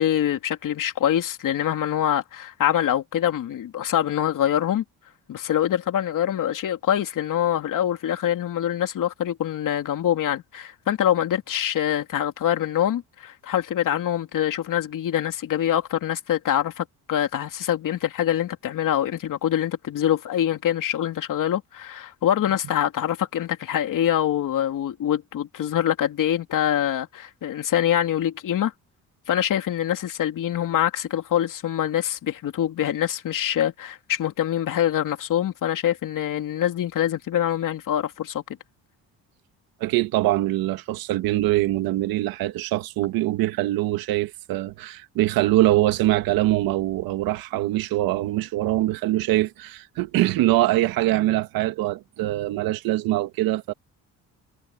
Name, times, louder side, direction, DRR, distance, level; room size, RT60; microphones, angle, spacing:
voice 1, 0.0-4.8 5.3-28.7 29.3-38.4, left 10 dB, 65° left, 3.1 m, -24 dB
voice 2, 39.8-53.7, right 16 dB, 85° right, 1.8 m, -23 dB
cardioid pair, 85°, 34 cm